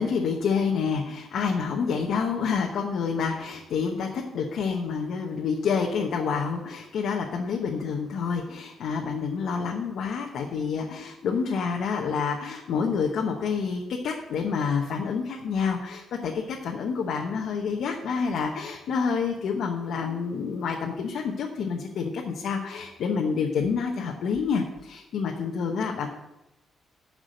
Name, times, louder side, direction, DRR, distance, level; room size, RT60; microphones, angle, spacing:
voice 1, 0.0-26.1, left 5 dB, 65° left, 1 dB, 1.0 m, -28 dB
11.5 x 4.9 x 6.5 m, 0.95 s
cardioid pair, 165°, 0 cm